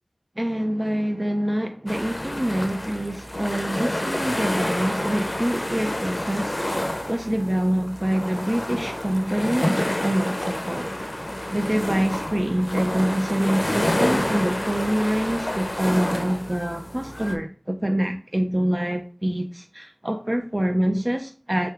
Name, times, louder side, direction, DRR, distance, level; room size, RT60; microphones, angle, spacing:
voice 1, 0.4-10.9 11.5-21.7, right 1 dB, 30° right, 0.4 m, -25 dB
sound 1, 1.9-17.3, left 1 dB, 40° left, 0.6 m, -28 dB
3.7 x 3.4 x 3.3 m
wide cardioid pair, 45°, 0 cm